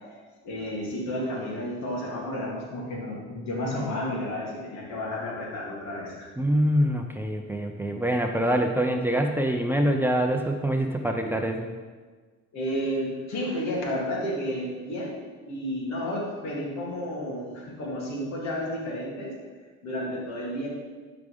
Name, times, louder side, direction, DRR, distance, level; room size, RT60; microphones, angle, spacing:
voice 1, 0.4-6.3 12.5-15.1 15.5-19.3 19.8-20.7, equal, 65° left, -3 dB, 3.0 m, -31 dB
voice 2, 6.4-11.7, equal, 5° right, 3 dB, 0.6 m, -25 dB
12.0 x 5.0 x 5.2 m, 1.4 s
cardioid pair, 110°, 29 cm